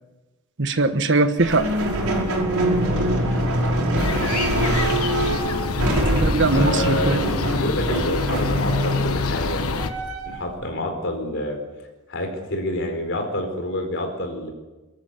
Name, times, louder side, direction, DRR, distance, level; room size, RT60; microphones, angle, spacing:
voice 1, 0.6-1.7 6.1-7.2, right 3 dB, 55° right, 9 dB, 1.3 m, -20 dB
sound 1, 1.4-10.5, right 1 dB, 85° right, 5.5 m, -24 dB
sound 2, 4.0-9.9, left 3 dB, 85° left, 1.2 m, -25 dB
voice 2, 6.5-9.6 10.3-11.6 12.1-14.5, left 1 dB, 60° left, 4 dB, 4.4 m, -27 dB
24.0 x 13.5 x 8.3 m, 1.2 s
head